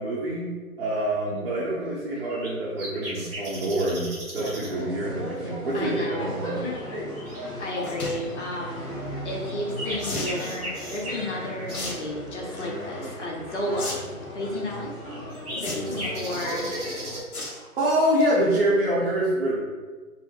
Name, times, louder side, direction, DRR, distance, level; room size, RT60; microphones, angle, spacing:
voice 1, 0.0-6.6 15.8-16.0 17.5-19.6, right 1 dB, 40° right, -8 dB, 0.8 m, -26 dB
sound 1, 2.2-2.5 2.8-4.7 5.3-5.4 5.8-8.7 9.2-11.8 13.8-13.9 14.5-14.6 15.0-17.2, equal, 5° right, 0.7 m, -38 dB
sound 2, 4.3-17.2, equal, 15° left, 1.1 m, -36 dB
voice 2, 5.7-6.3 7.6-9.0 9.2-14.0 14.3-14.9 15.5-16.7, left 1 dB, 50° left, -1 dB, 0.9 m, -32 dB
sound 3, 7.8-8.2 10.0-10.4 11.7-11.9 12.3-12.6 13.8-13.9 14.2-14.3 15.6-16.1 17.3-17.6 18.0-18.2 18.6-18.7 18.9-19.0, left 2 dB, 70° left, 1.1 m, -33 dB
4.1 x 2.1 x 4.3 m, 1.4 s
figure-of-eight pair, 140°, 45 cm